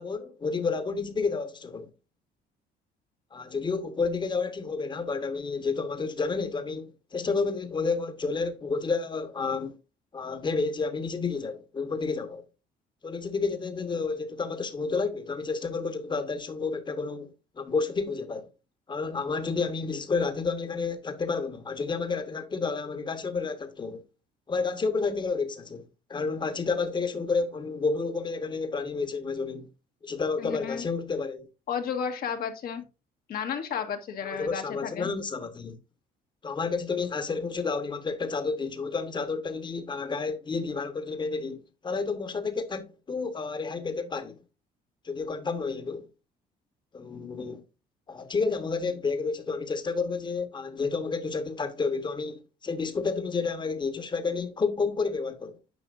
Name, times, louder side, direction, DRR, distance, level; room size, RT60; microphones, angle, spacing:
voice 1, 0.0-1.9 3.3-9.7 10.1-12.4 13.0-18.5 18.9-24.0 24.5-29.7 30.0-31.5 34.2-35.8 36.4-44.4 45.0-46.1 46.9-47.6 48.1-55.6, left 4 dB, 25° left, 1.3 m, -30 dB
voice 2, 30.4-30.8 31.7-32.8 33.3-35.1, left 7 dB, 60° left, 1.6 m, -32 dB
9.6 x 5.9 x 2.6 m
cardioid pair, 110°, 17 cm